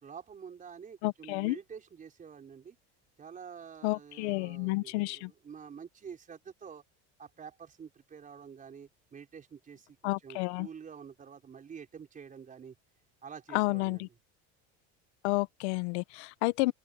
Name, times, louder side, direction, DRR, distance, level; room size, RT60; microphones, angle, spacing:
voice 1, 0.0-2.8 3.2-6.8 7.2-12.8 13.2-14.1, right 7 dB, 25° right, 5.0 m, -48 dB
voice 2, 1.0-1.6 3.8-5.3 10.0-10.7 13.5-14.1 15.2-16.7, left 23 dB, 90° left, 0.9 m, -30 dB
open air
cardioid pair, 145°, 32 cm